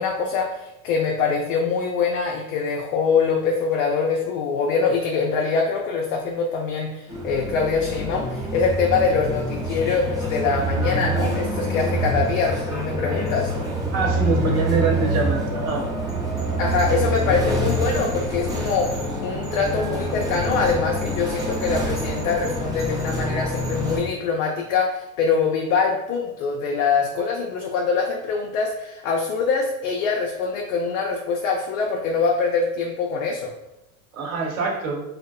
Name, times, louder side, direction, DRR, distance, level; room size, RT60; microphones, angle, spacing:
voice 1, 0.0-13.5 16.6-33.5, left 5 dB, 70° left, 0 dB, 0.5 m, -24 dB
sound 1, 7.1-24.0, right 1 dB, 10° right, 0.5 m, -26 dB
voice 2, 13.9-15.8 34.1-35.0, right 3 dB, 75° right, -1 dB, 0.9 m, -24 dB
2.7 x 2.0 x 2.3 m, 0.92 s
hypercardioid pair, 105°, 42 cm